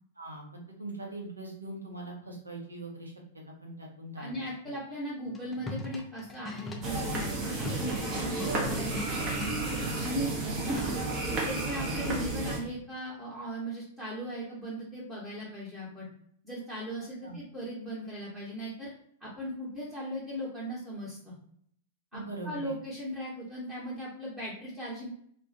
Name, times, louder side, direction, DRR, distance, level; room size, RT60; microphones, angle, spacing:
voice 1, 0.2-3.1 3.5-4.4 10.5-10.7 11.8-11.9 17.2-17.4 22.1-22.7, right 2 dB, 85° right, -1 dB, 0.6 m, -42 dB
voice 2, 4.2-8.9 9.2-9.3 10.0-10.3 10.6-11.0 11.3-16.1 16.4-18.9 19.2-21.3 22.1-25.1, equal, ahead, -9 dB, 0.8 m, -38 dB
sound 1, 5.3-9.6 10.8-11.2, left 2 dB, 15° left, 0.4 m, -41 dB
sound 2, 6.8-12.6, right 2 dB, 35° right, 0.6 m, -32 dB
2.2 x 2.1 x 2.6 m, 0.65 s
figure-of-eight pair, 100°, 0 cm